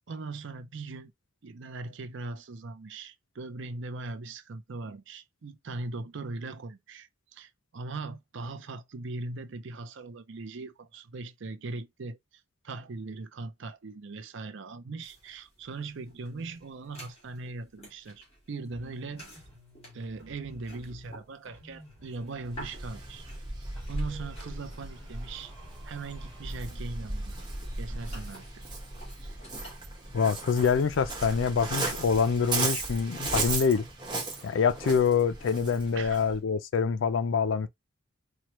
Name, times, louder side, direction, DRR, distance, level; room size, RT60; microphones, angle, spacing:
voice 1, 0.1-1.1 1.4-19.3 19.9-23.2 23.9-25.5 25.8-27.4 27.8-28.4 29.2-29.4 34.4-34.5 35.9-36.2, right 3 dB, 65° right, 0.5 m, -40 dB
sound 1, 15.0-31.3, equal, 30° left, 2.0 m, -53 dB
sound 2, 18.7-21.2 21.5-23.5 23.8-27.2, equal, 10° left, 1.6 m, -53 dB
Waves surf, 22.5-36.4, right 3 dB, 20° right, 1.1 m, -36 dB
voice 2, 30.1-33.9 34.4-37.7, left 6 dB, 65° left, 0.4 m, -25 dB
4.4 x 2.2 x 3.0 m
head